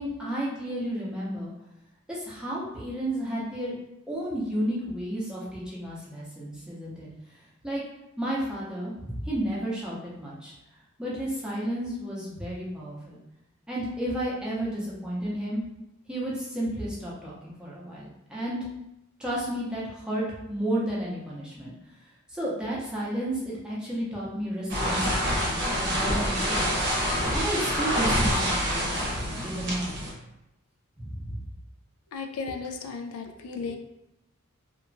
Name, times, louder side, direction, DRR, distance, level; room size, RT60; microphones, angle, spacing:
voice 1, 0.0-1.5 2.1-3.7 4.1-7.1 7.6-7.8 8.2-10.5 11.0-13.2 13.7-15.6 16.1-18.6 19.2-21.7 22.3-26.7 27.3-29.9 31.0-31.3, right 1 dB, 5° right, -7 dB, 0.6 m, -32 dB
sound 1, 24.7-30.1, equal, 50° right, 0.7 m, -26 dB
voice 2, 32.1-33.8, left 4 dB, 85° left, 5 dB, 0.3 m, -35 dB
2.9 x 2.2 x 2.5 m, 0.88 s
head